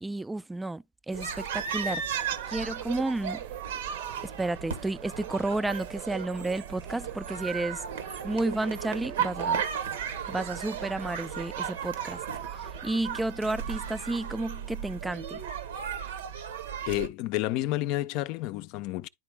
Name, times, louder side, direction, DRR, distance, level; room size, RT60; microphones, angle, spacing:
voice 1, 0.0-2.0 2.5-3.4 4.2-7.8 8.2-9.6 10.3-12.2 12.8-15.4, right 2 dB, 10° right, 0.3 m, -31 dB
sound 1, 1.1-17.1, right 7 dB, 80° right, 1.1 m, -35 dB
sound 2, 2.1-12.9, right 11 dB, 50° right, 0.8 m, -48 dB
voice 2, 16.9-19.1, left 16 dB, 55° left, 0.5 m, -30 dB
10.5 x 3.6 x 3.4 m
hypercardioid pair, 110°, 0 cm